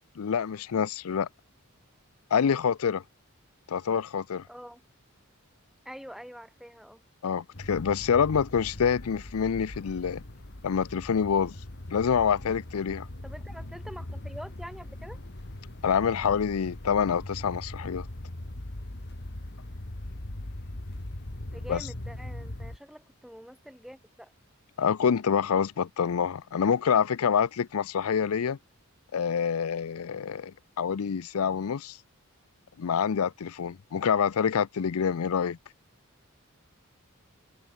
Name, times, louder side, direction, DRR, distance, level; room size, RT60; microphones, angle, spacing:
voice 1, 0.2-1.3 2.3-3.0 3.7-4.4 7.2-10.2 10.6-11.6 11.9-13.1 15.8-18.1 21.7-21.9 24.8-28.6 29.1-32.0 32.8-35.6, left 7 dB, 85° left, 0.5 m, -26 dB
voice 2, 4.5-4.8 5.9-7.0 13.2-15.2 21.4-24.3, equal, ahead, 7.0 m, -45 dB
sound 1, 7.5-22.8, left 1 dB, 55° left, 2.0 m, -40 dB
head